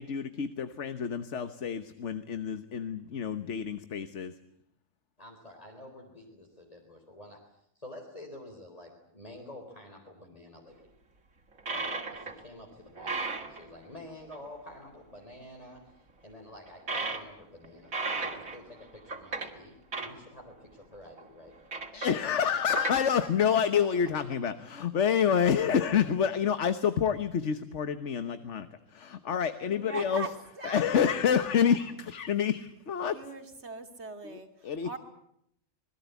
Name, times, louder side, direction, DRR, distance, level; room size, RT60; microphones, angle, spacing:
voice 1, 0.0-4.3 21.9-28.7 28.9-30.2 30.6-33.2 34.2-34.4 34.6-35.0, left 7 dB, 60° left, 11 dB, 1.4 m, -28 dB
voice 2, 5.2-7.4 7.7-10.9 11.6-21.6 23.7-24.1, left 1 dB, 25° left, 0 dB, 4.2 m, -49 dB
sound 1, 11.6-12.4 12.7-13.6 14.3-14.5 14.8-14.9 16.8-17.3 17.6-19.5 19.9-20.2 21.0-21.3 21.7-22.3 22.7-23.2, right 3 dB, 80° right, 3.1 m, -35 dB
voice 3, 29.7-31.8 33.1-35.0, right 3 dB, 50° right, 6 dB, 2.9 m, -41 dB
27.5 x 20.5 x 8.3 m, 0.75 s
omnidirectional pair, 1.4 m